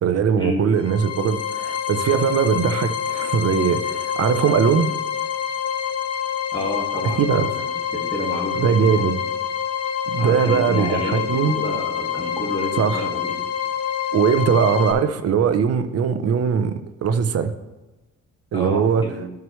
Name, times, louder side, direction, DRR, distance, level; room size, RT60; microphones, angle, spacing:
voice 1, 0.0-4.9 7.2-7.5 8.6-9.1 10.1-11.5 12.8-13.1 14.1-17.5 18.5-19.0, right 7 dB, 55° right, 10 dB, 0.7 m, -20 dB
sound 1, 0.7-14.9, left 9 dB, 55° left, 0.9 m, -27 dB
voice 2, 6.5-9.1 10.2-13.3 18.5-19.2, equal, 15° left, -1 dB, 2.0 m, -30 dB
12.0 x 4.8 x 3.1 m, 1.1 s
cardioid pair, 90°, 30 cm